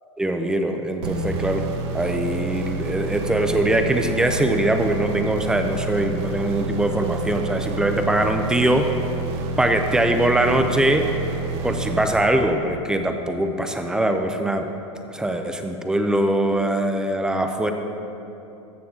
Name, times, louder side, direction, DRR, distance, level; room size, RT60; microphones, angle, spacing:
voice 1, 0.2-1.7 1.9-8.9 9.6-11.1 11.6-14.7 15.1-17.7, right 1 dB, 5° right, 5 dB, 0.4 m, -22 dB
sound 1, 1.0-12.7, right 3 dB, 55° right, 1.0 m, -29 dB
13.5 x 7.5 x 3.7 m, 2.9 s
supercardioid pair, 150°, 16 cm